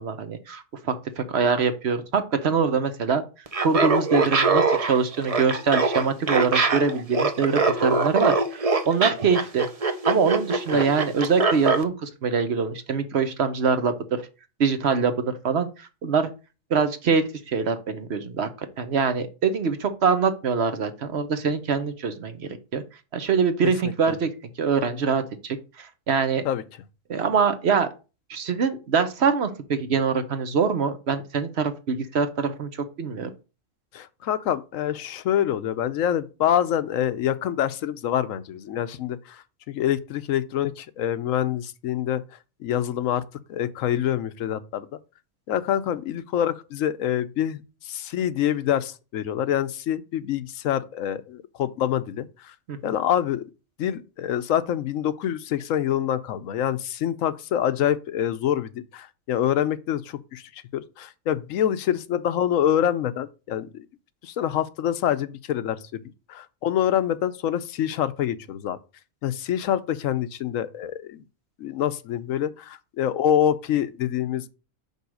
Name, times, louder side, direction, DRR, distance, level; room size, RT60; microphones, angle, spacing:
voice 1, 0.0-3.2 3.6-9.7 10.0-14.3 14.6-16.3 16.7-18.5 18.8-22.8 23.1-24.3 24.6-26.4 27.1-27.9 28.3-33.3 52.7-52.8, right 5 dB, 60° right, 1.0 m, -24 dB
Laughter, 3.5-11.8, right 3 dB, 35° right, 0.7 m, -23 dB
voice 2, 33.9-42.2 42.6-43.2 43.5-44.9 45.5-52.5 52.8-53.4 53.8-60.4 60.7-63.8 64.2-66.0 66.3-68.8 69.2-71.2 71.6-74.5, left 10 dB, 85° left, 1.1 m, -26 dB
5.4 x 4.6 x 6.3 m
omnidirectional pair, 1.3 m